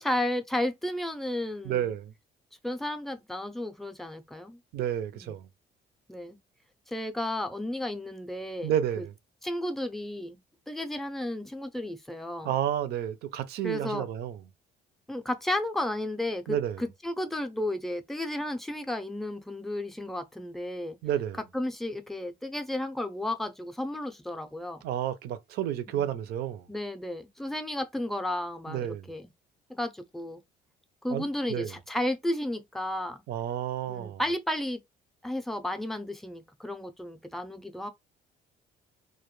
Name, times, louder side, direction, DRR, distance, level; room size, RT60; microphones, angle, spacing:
voice 1, 0.0-1.9 2.6-4.6 5.1-5.3 6.1-6.4 6.9-9.0 9.4-10.4 10.7-12.6 13.6-14.1 15.1-21.0 21.5-24.9 25.9-26.2 26.7-29.3 29.7-30.4 31.0-33.2 33.9-34.8 35.2-37.9, left 1 dB, ahead, 0.4 m, -33 dB
voice 2, 1.6-2.1 4.7-5.5 8.6-9.1 12.4-14.4 16.5-16.8 21.0-21.4 24.8-26.7 28.7-29.1 31.1-31.7 33.3-34.2, right 10 dB, 70° right, 0.4 m, -31 dB
2.2 x 2.1 x 3.0 m
cardioid pair, 110°, 17 cm